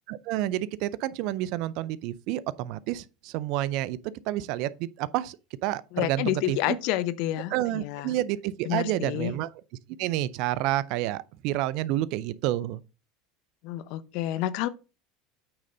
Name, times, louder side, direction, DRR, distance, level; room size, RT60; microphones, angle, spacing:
voice 1, 0.1-4.0 4.3-5.4 5.6-6.8 7.5-9.5 10.0-12.8, right 14 dB, 65° right, 0.5 m, -29 dB
voice 2, 5.9-8.1 8.7-9.3 13.6-14.7, left 14 dB, 65° left, 0.7 m, -29 dB
8.7 x 3.9 x 5.4 m
supercardioid pair, 100°, 0 cm